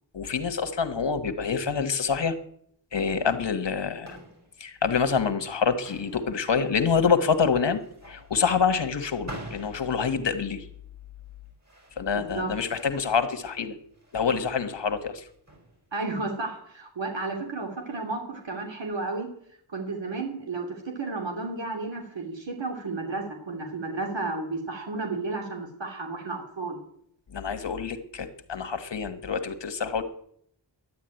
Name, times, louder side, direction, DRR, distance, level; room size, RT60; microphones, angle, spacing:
voice 1, 0.1-2.3 2.9-4.2 4.6-7.8 8.1-10.7 12.0-13.7 14.1-15.3 27.3-30.0, left 6 dB, 65° left, 9 dB, 1.5 m, -26 dB
sound 1, 3.5-16.3, right 1 dB, 35° right, 5.8 m, -48 dB
voice 2, 12.1-12.5 15.9-19.3 19.7-26.8, right 3 dB, 75° right, 1 dB, 2.9 m, -32 dB
11.0 x 10.5 x 9.1 m, 0.69 s
wide cardioid pair, 95°, 45 cm